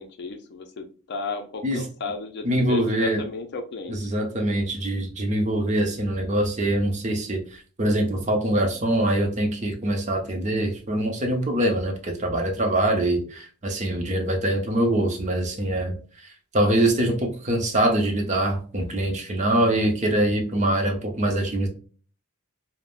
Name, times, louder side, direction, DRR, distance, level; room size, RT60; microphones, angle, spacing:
voice 1, 0.0-4.0, left 3 dB, 50° left, 6 dB, 0.5 m, -33 dB
voice 2, 2.4-3.2 3.9-21.7, right 1 dB, 35° right, 2 dB, 0.7 m, -24 dB
3.4 x 2.1 x 2.4 m, 0.40 s
head